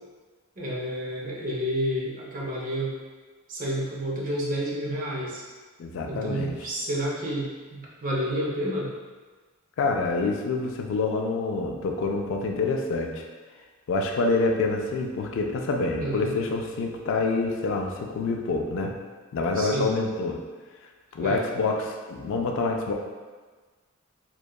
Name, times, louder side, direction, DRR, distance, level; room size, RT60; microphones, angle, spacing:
voice 1, 0.6-2.9 3.5-5.4 6.0-8.9 16.0-16.3 19.6-19.9 21.2-21.4, equal, 40° right, -4 dB, 0.5 m, -30 dB
voice 2, 5.8-6.5 9.8-13.3 13.9-18.9 19.3-20.4 21.1-22.9, left 3 dB, 60° left, 2 dB, 0.3 m, -27 dB
2.7 x 2.2 x 2.2 m, 1.4 s
head